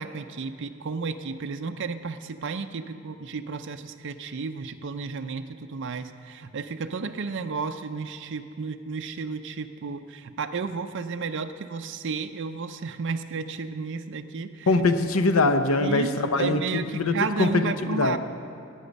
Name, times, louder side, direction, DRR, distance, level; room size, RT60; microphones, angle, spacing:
voice 1, 0.0-14.7 15.8-18.2, right 4 dB, 60° right, 7 dB, 0.5 m, -32 dB
voice 2, 14.7-18.2, left 2 dB, 85° left, 9 dB, 0.8 m, -23 dB
16.5 x 9.0 x 5.3 m, 2.5 s
head